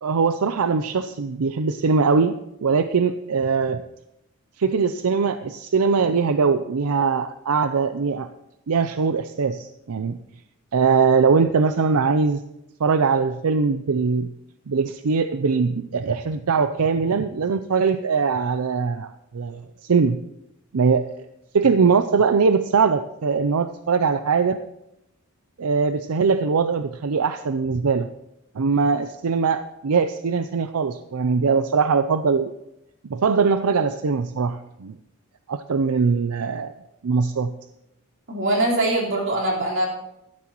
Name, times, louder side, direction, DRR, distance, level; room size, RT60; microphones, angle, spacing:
voice 1, 0.0-3.8 4.6-8.3 8.7-10.2 10.7-12.4 12.8-14.3 14.7-20.2 20.7-21.1 21.5-24.6 25.6-28.1 28.5-32.5 33.0-35.0 35.5-36.7 37.0-37.5, right 5 dB, 85° right, 10 dB, 0.5 m, -21 dB
voice 2, 38.3-39.9, right 1 dB, 60° right, -3 dB, 4.2 m, -22 dB
17.0 x 14.0 x 3.0 m, 0.87 s
head